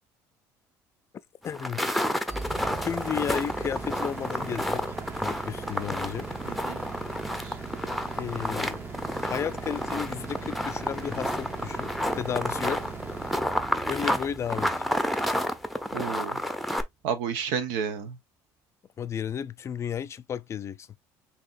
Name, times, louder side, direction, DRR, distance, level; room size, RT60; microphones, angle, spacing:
voice 1, 1.4-1.8 2.8-4.8 5.2-6.3 8.2-8.8 9.2-12.8 13.9-14.9 19.0-20.9, left 8 dB, 40° left, 0.5 m, -33 dB
sound 1, 1.4-16.8, equal, ahead, 0.7 m, -30 dB
sound 2, 2.3-16.2, right 4 dB, 30° right, 1.0 m, -40 dB
voice 2, 6.4-6.8 7.4-7.6 15.9-16.4 17.0-18.2, right 7 dB, 80° right, 0.9 m, -31 dB
5.9 x 2.9 x 2.5 m
supercardioid pair, 85°, 7 cm